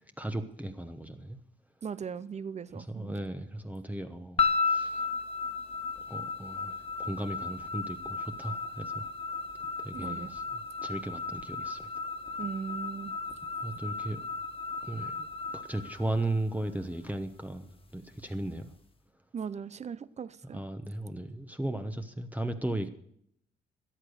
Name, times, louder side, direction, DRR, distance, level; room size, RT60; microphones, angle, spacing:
voice 1, 0.2-1.4 2.7-5.0 6.1-9.1 9.8-10.4 10.8-11.9 13.6-14.2 14.8-15.3 15.5-18.7 20.5-22.9, right 1 dB, 10° right, 1.0 m, -36 dB
voice 2, 1.8-3.1 9.9-10.4 12.4-13.2 19.3-20.6, right 6 dB, 35° right, 0.7 m, -39 dB
sound 1, 4.4-16.7, left 4 dB, 25° left, 1.6 m, -34 dB
13.5 x 9.9 x 6.4 m
cardioid pair, 90°, 20 cm